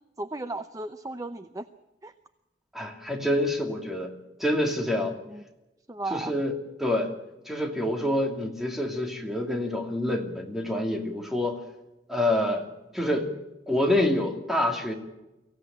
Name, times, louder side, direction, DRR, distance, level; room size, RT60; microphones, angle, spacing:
voice 1, 0.2-1.7 2.0-2.1 5.3-5.4 5.9-6.3, right 2 dB, 20° right, 10 dB, 0.7 m, -35 dB
voice 2, 2.7-4.1 4.4-5.2 6.1-6.5 6.8-7.1 7.5-11.6 12.1-12.7 12.9-13.4 13.7-14.9, left 1 dB, ahead, 2 dB, 2.7 m, -27 dB
24.0 x 16.5 x 8.9 m, 0.99 s
head